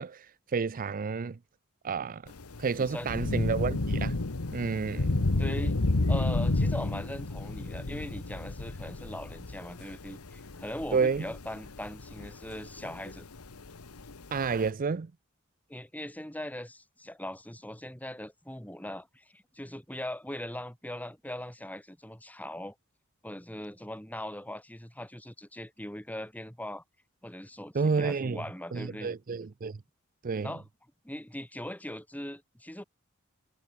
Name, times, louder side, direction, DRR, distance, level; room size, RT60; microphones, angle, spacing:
voice 1, 0.0-1.4 1.8-2.3 2.6-4.2 4.5-5.2 10.9-11.2 14.3-15.1 27.7-28.4 28.7-29.8 30.2-30.5, right 5 dB, 40° right, 0.5 m, -30 dB
Thunder / Rain, 2.3-14.7, left 2 dB, 90° left, 1.3 m, -32 dB
voice 2, 2.8-3.2 5.4-5.8 6.1-13.3 15.7-22.8 23.2-26.8 27.2-29.1 30.4-30.6 31.0-32.8, left 1 dB, 5° left, 5.4 m, -40 dB
head